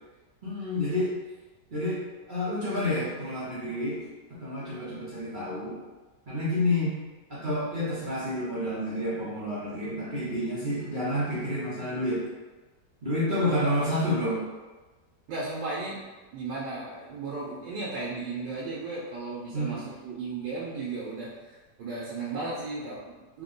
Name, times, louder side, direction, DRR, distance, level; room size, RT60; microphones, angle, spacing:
voice 1, 0.4-1.1 1.7-2.0 2.3-4.0 4.3-5.8 6.3-6.9 7.3-12.2 13.0-14.4 19.5-19.8, left 1 dB, 40° right, -10 dB, 0.8 m, -29 dB
voice 2, 10.6-10.9 13.4-13.7 15.3-16.0 16.3-23.4, right 3 dB, 85° right, -6 dB, 1.4 m, -35 dB
3.7 x 2.1 x 3.8 m, 1.2 s
omnidirectional pair, 1.8 m